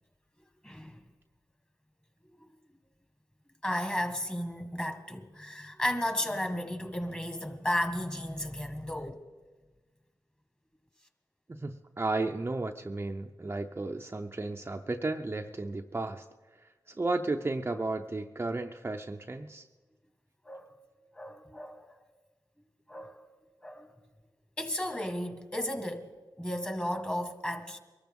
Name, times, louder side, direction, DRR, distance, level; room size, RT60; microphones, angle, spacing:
voice 1, 0.6-1.0 3.6-9.3 20.5-20.8 21.2-22.0 22.9-23.3 23.6-23.9 24.6-26.1 26.4-27.8, left 1 dB, 15° left, 1.8 m, -34 dB
voice 2, 11.5-16.3 16.5-19.7, right 2 dB, 30° right, 0.6 m, -34 dB
22.5 x 13.5 x 3.7 m
cardioid pair, 45°, 8 cm